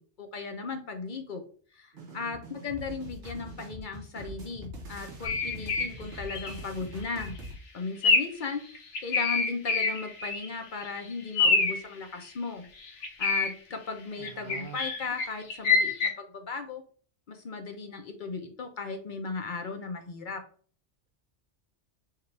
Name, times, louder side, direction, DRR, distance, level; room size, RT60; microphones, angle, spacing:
voice 1, 0.0-1.4 1.7-7.4 7.7-12.7 12.9-16.8 17.3-20.4, left 4 dB, 50° left, 5 dB, 0.7 m, -37 dB
voice 2, 1.9-2.4 14.2-14.8, right 7 dB, 60° right, 5 dB, 0.6 m, -46 dB
sound 1, 2.0-7.5, equal, 80° right, 1.5 m, -43 dB
sound 2, 5.2-5.9 6.3-6.6 7.0-7.3 8.0-8.4 8.8-10.6 10.8-10.9 11.3-11.9 12.8-13.5 14.2-16.1, left 4 dB, 75° left, 1.2 m, -26 dB
6.5 x 2.4 x 3.2 m, 0.43 s
omnidirectional pair, 1.2 m